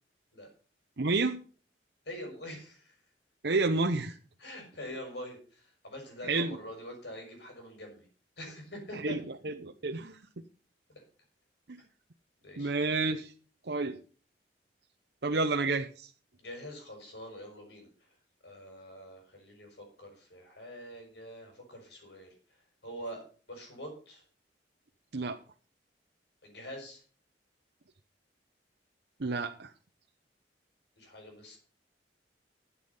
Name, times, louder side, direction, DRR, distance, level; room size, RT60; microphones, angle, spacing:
voice 1, 1.0-1.4 3.4-4.2 6.2-6.6 8.9-9.2 9.4-10.2 12.6-13.3 13.7-14.0 15.2-16.1 25.1-25.4 29.2-29.7, right 3 dB, 70° right, 4 dB, 0.8 m, -30 dB
voice 2, 2.1-2.9 4.4-8.1 8.4-9.2 10.9-11.0 12.4-12.7 16.4-17.9 18.4-22.3 22.8-24.2 26.4-27.0 31.0-31.6, equal, 75° left, 3 dB, 6.2 m, -45 dB
13.0 x 8.3 x 5.5 m, 0.40 s
head